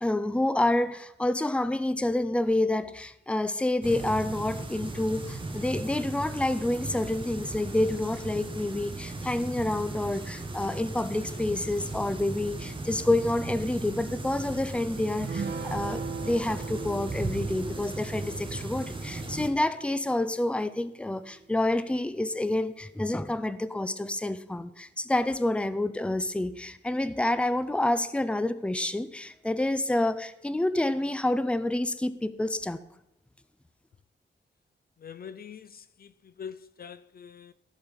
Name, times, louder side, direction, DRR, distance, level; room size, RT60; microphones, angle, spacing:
voice 1, 0.0-32.8, left 1 dB, 5° left, 0.5 m, -28 dB
sound 1, 3.8-19.5, right 2 dB, 25° right, 1.5 m, -37 dB
sound 2, 15.2-20.9, right 4 dB, 75° right, 1.3 m, -40 dB
voice 2, 35.0-37.5, left 7 dB, 55° left, 0.4 m, -44 dB
15.0 x 6.3 x 5.3 m
wide cardioid pair, 145°, 19 cm